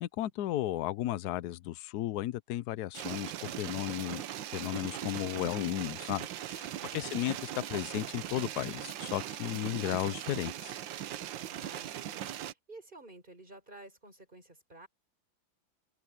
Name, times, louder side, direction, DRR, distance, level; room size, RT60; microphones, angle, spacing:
voice 1, 0.0-4.2 4.5-10.8, left 14 dB, 70° left, 1.0 m, -34 dB
sound 1, 2.9-12.5, right 11 dB, 75° right, 1.5 m, -40 dB
voice 2, 11.4-14.9, right 2 dB, 25° right, 5.7 m, -53 dB
open air
omnidirectional pair, 2.1 m